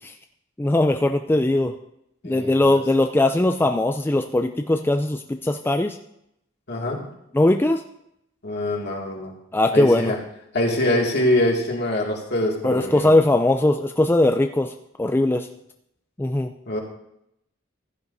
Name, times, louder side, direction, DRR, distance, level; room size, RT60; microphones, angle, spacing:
voice 1, 0.6-1.7 2.2-6.0 7.3-7.8 9.5-10.1 12.6-14.7 15.0-15.5 16.2-16.5, left 1 dB, 10° left, 5 dB, 0.4 m, -20 dB
voice 2, 2.2-2.8 6.7-7.0 8.4-9.3 9.7-10.2 10.5-13.1 16.7-16.8, left 1 dB, 55° left, -1 dB, 2.2 m, -24 dB
15.0 x 11.0 x 2.7 m, 0.80 s
head